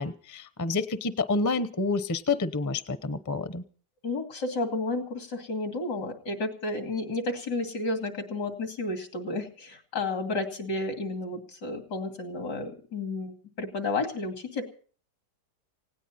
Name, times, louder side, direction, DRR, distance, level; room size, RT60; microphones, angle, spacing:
voice 1, 0.0-3.6, left 3 dB, 20° left, 12 dB, 0.5 m, -28 dB
voice 2, 4.0-14.6, left 2 dB, 85° left, 5 dB, 3.2 m, -32 dB
18.5 x 17.5 x 4.2 m, 0.43 s
omnidirectional pair, 1.8 m